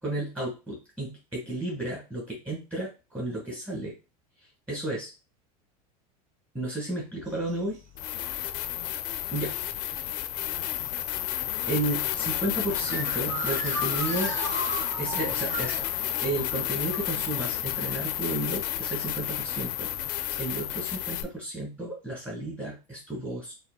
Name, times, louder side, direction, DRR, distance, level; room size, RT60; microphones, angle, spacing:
voice 1, 0.0-3.9 4.7-5.1 6.5-7.8 9.3-9.6 9.8-10.3 11.7-14.3 15.0-15.9 16.2-19.9 20.4-23.5, right 2 dB, 10° right, -4 dB, 1.8 m, -33 dB
sound 1, 7.2-7.3 7.9-21.2, left 13 dB, 50° left, 0.5 m, -31 dB
sound 2, 7.3-7.5 9.0-9.1 9.9-10.1 10.8-10.9 11.7-17.5, right 2 dB, 40° right, 0.9 m, -37 dB
4.3 x 2.1 x 2.3 m, 0.28 s
hypercardioid pair, 90°, 19 cm